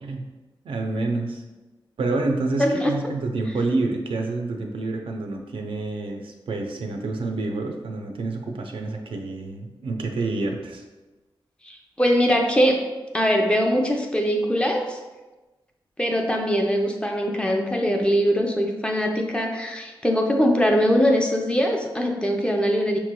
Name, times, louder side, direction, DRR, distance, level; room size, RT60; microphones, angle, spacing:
voice 1, 0.6-1.4 2.0-10.8, right 3 dB, 85° right, 3 dB, 0.5 m, -28 dB
voice 2, 2.6-2.9 11.6-12.8 13.1-15.0 16.0-23.0, equal, 10° left, 1 dB, 0.5 m, -22 dB
5.7 x 3.0 x 2.2 m, 1.1 s
wide cardioid pair, 140°, 9 cm